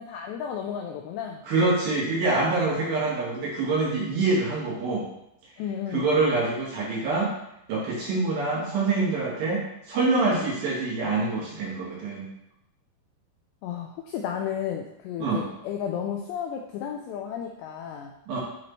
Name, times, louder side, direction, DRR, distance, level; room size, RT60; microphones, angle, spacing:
voice 1, 0.0-1.4 2.7-3.0 5.6-6.1 10.2-10.5 13.6-18.1, left 8 dB, 90° left, 2 dB, 2.4 m, -33 dB
voice 2, 1.4-5.1 5.9-7.3 7.7-12.3 15.2-15.4 18.3-18.4, right 3 dB, 70° right, -5 dB, 2.5 m, -25 dB
10.5 x 4.2 x 3.0 m, 0.81 s
omnidirectional pair, 5.5 m